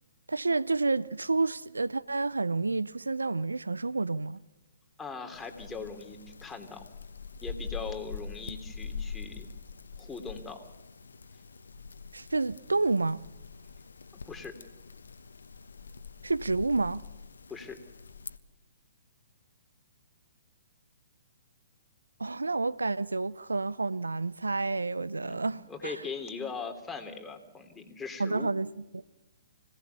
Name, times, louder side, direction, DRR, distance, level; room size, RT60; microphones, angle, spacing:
voice 1, 0.3-4.4 12.1-13.2 16.2-17.0 22.2-25.9 28.2-29.0, right 3 dB, 85° right, 0.6 m, -29 dB
voice 2, 5.0-6.8 7.4-9.5 10.0-10.6 14.3-14.5 17.5-17.8 25.2-28.5, left 4 dB, 10° left, 3.0 m, -40 dB
sound 1, 5.3-18.4, left 5 dB, 75° left, 1.2 m, -44 dB
25.5 x 18.0 x 6.9 m
figure-of-eight pair, 125°, 0 cm